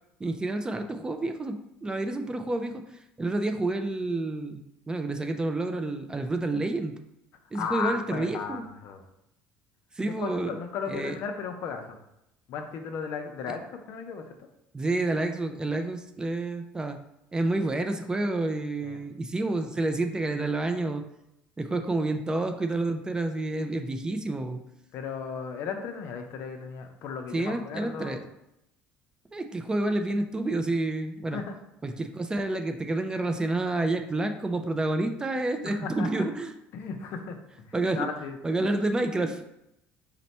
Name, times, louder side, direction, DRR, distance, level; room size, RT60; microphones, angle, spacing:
voice 1, 0.2-2.8 3.2-6.9 7.5-8.6 9.9-10.6 10.9-11.2 14.7-17.0 17.3-21.0 21.6-24.6 27.3-28.2 29.3-31.4 31.8-36.5 37.7-38.1 38.4-39.4, right 2 dB, 15° right, 7 dB, 0.4 m, -29 dB
voice 2, 7.5-9.0 10.0-12.0 12.5-14.3 18.8-19.0 24.9-28.2 31.3-31.6 35.6-36.2 36.7-37.4 38.0-38.4, left 5 dB, 60° left, 5 dB, 0.6 m, -35 dB
4.1 x 2.1 x 4.1 m, 0.84 s
cardioid pair, 110°, 5 cm